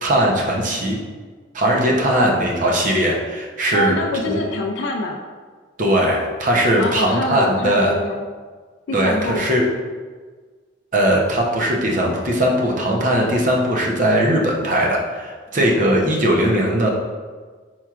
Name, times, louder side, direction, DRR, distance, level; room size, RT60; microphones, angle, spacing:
voice 1, 0.0-1.0 1.5-4.0 4.3-4.4 5.8-8.0 8.9-9.7 10.9-16.9, right 1 dB, 45° right, -1 dB, 0.7 m, -19 dB
voice 2, 3.7-5.2 6.8-8.2 8.9-9.5, left 1 dB, 65° left, 1 dB, 0.4 m, -25 dB
4.5 x 4.4 x 2.4 m, 1.5 s
head